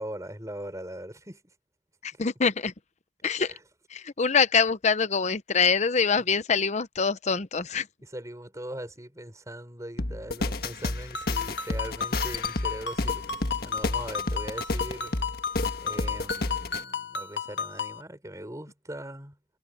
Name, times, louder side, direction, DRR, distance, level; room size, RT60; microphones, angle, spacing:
voice 1, 0.0-1.4 3.4-3.6 8.0-13.4 13.6-15.2 15.8-19.4, right 1 dB, 20° right, 5.3 m, -40 dB
voice 2, 2.0-2.7 3.2-3.5 3.9-7.9, left 5 dB, 40° left, 0.8 m, -24 dB
sound 1, 10.0-16.8, left 2 dB, 60° left, 1.5 m, -31 dB
Ringtone, 11.1-18.0, left 6 dB, 85° left, 1.9 m, -33 dB
head